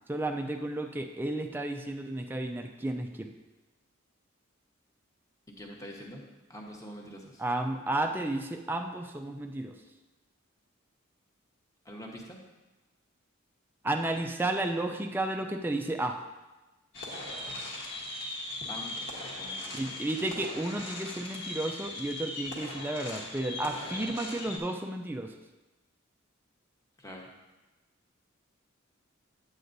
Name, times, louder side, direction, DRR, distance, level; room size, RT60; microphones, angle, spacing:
voice 1, 0.1-3.3 7.4-9.8 13.8-16.2 19.7-25.3, right 1 dB, 10° right, 4 dB, 0.4 m, -32 dB
voice 2, 5.6-6.2 6.5-7.4 11.8-12.4 18.7-19.8 27.0-27.3, equal, 15° left, -1 dB, 1.1 m, -45 dB
sound 1, 16.9-24.6, left 2 dB, 60° left, 1.3 m, -39 dB
9.3 x 7.7 x 2.6 m, 1.1 s
head